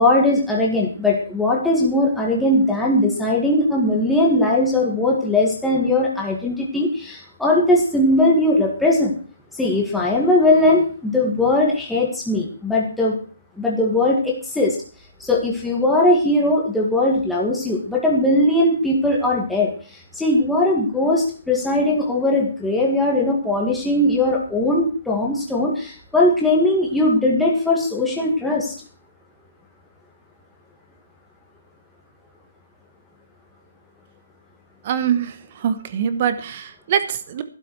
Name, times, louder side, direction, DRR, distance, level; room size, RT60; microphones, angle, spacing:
voice 1, 0.0-9.1 9.5-13.2 13.6-14.8 15.2-19.7 20.2-28.7, left 1 dB, ahead, -3 dB, 1.8 m, -19 dB
voice 2, 34.8-37.4, right 8 dB, 30° right, 11 dB, 1.2 m, -23 dB
13.5 x 12.0 x 4.7 m, 0.39 s
hypercardioid pair, 175°, 0 cm